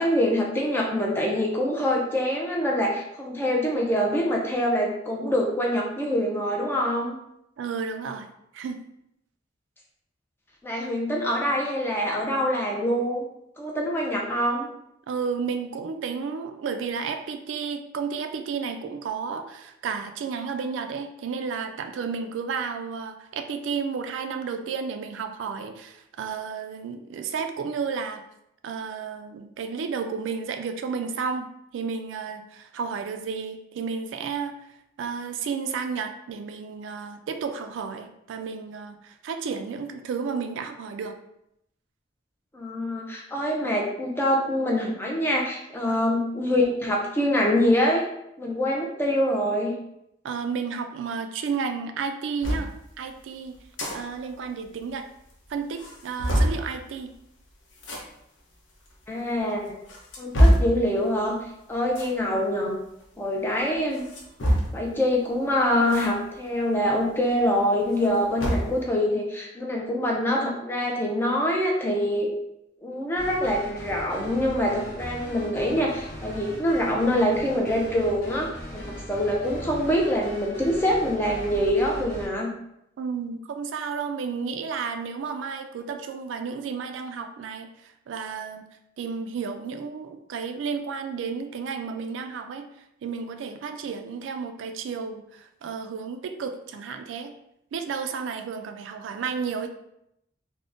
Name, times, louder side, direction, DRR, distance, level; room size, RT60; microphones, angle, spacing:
voice 1, 0.0-7.2 10.6-13.2 13.6-14.7 42.5-48.0 48.4-49.8 59.1-59.8 60.2-61.4 61.7-62.8 63.2-64.0 64.7-72.3 72.8-82.5, equal, 10° left, -1 dB, 0.3 m, -25 dB
voice 2, 7.6-8.3 8.5-8.8 15.1-28.2 28.6-41.1 45.9-46.0 50.2-53.6 53.9-55.0 55.5-57.1 83.0-88.6 89.0-92.7 93.0-97.3 97.7-99.7, right 5 dB, 75° right, 7 dB, 0.3 m, -32 dB
sound 1, 52.4-52.7 53.6-54.0 54.3-54.4 54.6-54.7 55.3-55.4 55.8-56.6 57.8-58.0 58.9-59.0 59.6-60.8 61.9-62.2 63.9-64.9 65.9-66.1 66.5-66.6 67.8-68.8, equal, 85° left, 0.7 m, -23 dB
sound 2, 73.2-82.3, equal, 50° left, 1.0 m, -39 dB
3.4 x 2.0 x 2.5 m, 0.80 s
head